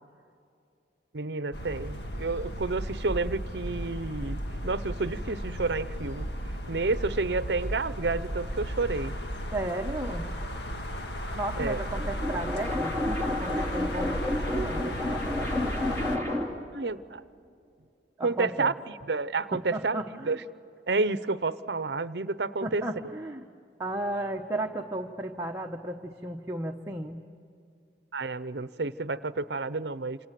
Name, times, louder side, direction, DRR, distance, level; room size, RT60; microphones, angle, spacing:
voice 1, 1.1-6.3 6.7-9.1 11.6-11.8 16.7-17.2 18.2-18.7 19.1-20.4 20.9-23.1 28.1-30.2, right 3 dB, 70° right, 15 dB, 0.8 m, -30 dB
sound 1, 1.5-16.2, equal, 70° left, 1.7 m, -35 dB
voice 2, 9.5-10.3 11.3-15.0 18.2-18.7 19.5-20.4 22.6-23.5 23.8-27.2, right 1 dB, 15° right, 1 dB, 1.0 m, -34 dB
sound 2, 11.8-16.7, left 1 dB, 15° left, 2.7 m, -31 dB
27.5 x 27.0 x 7.6 m, 2.5 s
head